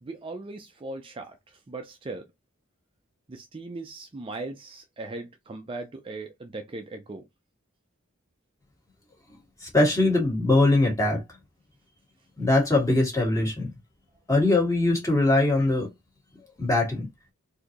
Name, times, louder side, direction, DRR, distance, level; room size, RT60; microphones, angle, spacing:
voice 1, 0.0-2.3 3.3-7.3, right 2 dB, 25° right, 0.4 m, -38 dB
voice 2, 9.6-11.2 12.4-13.7 14.3-15.9 16.6-17.1, left 2 dB, 15° left, 1.9 m, -22 dB
4.3 x 2.7 x 2.9 m
head